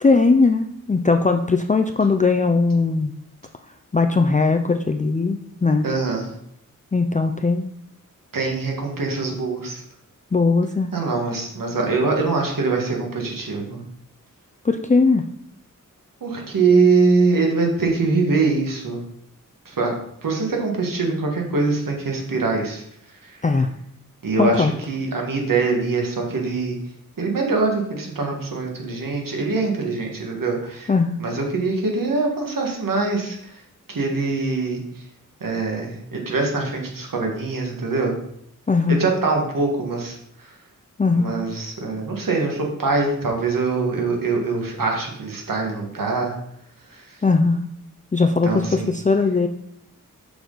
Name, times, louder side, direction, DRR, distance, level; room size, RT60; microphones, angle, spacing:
voice 1, 0.0-3.1 3.9-5.9 6.9-7.7 10.3-10.9 14.6-15.2 23.4-23.7 24.4-24.7 30.9-31.2 38.7-39.1 41.0-41.4 47.2-47.7 48.1-49.5, left 4 dB, 25° left, 5 dB, 0.5 m, -19 dB
voice 2, 5.8-6.3 8.3-9.8 10.9-13.8 16.2-19.0 19.7-19.9 20.2-22.8 23.2-23.4 24.2-26.8 27.2-30.9 31.2-33.6 33.9-34.8 35.4-38.1 38.9-40.5 41.1-46.4 46.9-47.2 48.4-48.9, right 3 dB, 75° right, 1 dB, 1.8 m, -23 dB
6.9 x 6.2 x 4.0 m, 0.71 s
wide cardioid pair, 95°, 33 cm